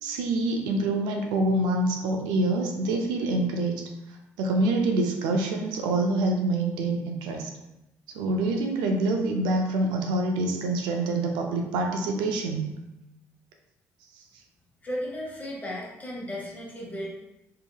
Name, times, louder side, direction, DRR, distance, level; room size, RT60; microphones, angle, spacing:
voice 1, 0.0-3.8 4.4-7.5 8.1-12.7, right 2 dB, 80° right, 2 dB, 0.4 m, -26 dB
voice 2, 14.8-17.1, equal, 20° left, -4 dB, 1.2 m, -35 dB
2.8 x 2.6 x 2.3 m, 0.94 s
hypercardioid pair, 55°, 7 cm